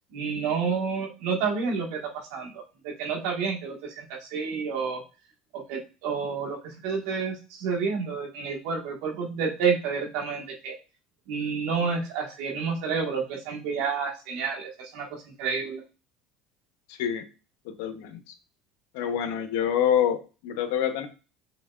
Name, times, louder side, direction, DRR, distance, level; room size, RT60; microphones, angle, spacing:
voice 1, 0.1-5.0 5.5-10.7 11.3-15.8, right 5 dB, 75° right, 0 dB, 1.6 m, -30 dB
voice 2, 16.9-17.2 17.8-18.2 18.9-21.1, left 9 dB, 80° left, 9 dB, 0.7 m, -26 dB
5.7 x 3.5 x 2.4 m, 0.33 s
supercardioid pair, 115°, 0 cm